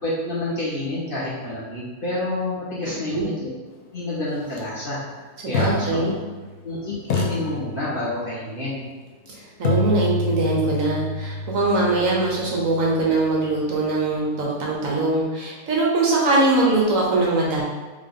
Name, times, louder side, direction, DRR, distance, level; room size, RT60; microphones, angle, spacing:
voice 1, 0.0-3.5 3.9-6.2 6.6-8.9, left 2 dB, 40° left, -8 dB, 1.2 m, -28 dB
sound 1, 4.4-4.6 5.5-6.7 7.1-8.3 9.6-13.6, left 2 dB, 65° left, 0.6 m, -28 dB
voice 2, 5.4-6.1 9.6-17.6, right 2 dB, 60° right, -3 dB, 1.1 m, -21 dB
3.7 x 3.6 x 3.7 m, 1.3 s
omnidirectional pair, 1.7 m